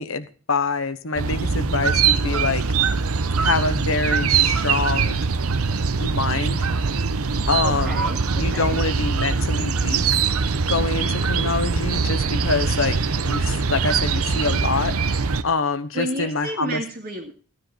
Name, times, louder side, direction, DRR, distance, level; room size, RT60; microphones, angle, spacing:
voice 1, 0.0-2.6 3.4-5.2 6.0-6.6 7.5-8.0 8.4-10.0 10.7-15.2 15.4-16.8, left 4 dB, 65° left, 12 dB, 1.1 m, -25 dB
sound 1, 1.2-15.4, right 5 dB, 90° right, 0.9 m, -22 dB
voice 2, 7.6-8.8 15.9-17.3, right 1 dB, 45° right, -1 dB, 2.1 m, -31 dB
15.0 x 9.9 x 4.1 m, 0.39 s
head